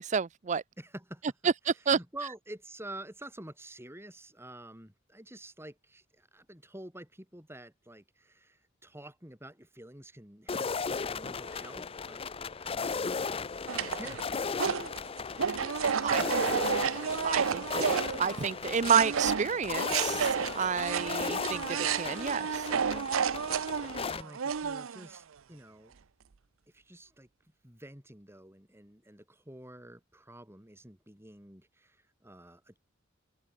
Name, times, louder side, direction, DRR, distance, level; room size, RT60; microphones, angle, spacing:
voice 1, 0.0-0.6 1.4-2.0 16.0-16.2 17.2-22.7, right 6 dB, 35° right, 0.5 m, -30 dB
voice 2, 0.8-1.5 1.9-12.2 12.6-13.5 13.7-14.9 23.6-26.0 26.7-27.3 27.6-32.8, right 1 dB, 10° right, 7.1 m, -48 dB
sound 1, 10.5-24.2, left 5 dB, 30° left, 0.5 m, -36 dB
sound 2, 13.7-18.6 18.8-25.2, right 7 dB, 85° right, 0.6 m, -31 dB
head